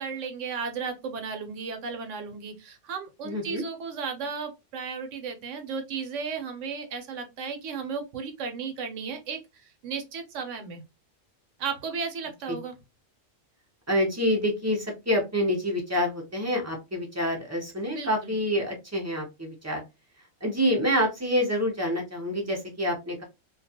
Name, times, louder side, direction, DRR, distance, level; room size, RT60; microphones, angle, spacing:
voice 1, 0.0-10.8 11.6-12.7 17.9-18.3, right 5 dB, 75° right, 5 dB, 0.9 m, -35 dB
voice 2, 3.2-3.6 12.5-12.6 13.9-19.8 20.4-23.2, equal, 20° right, 0 dB, 0.4 m, -27 dB
2.3 x 2.2 x 2.6 m, 0.24 s
omnidirectional pair, 1.3 m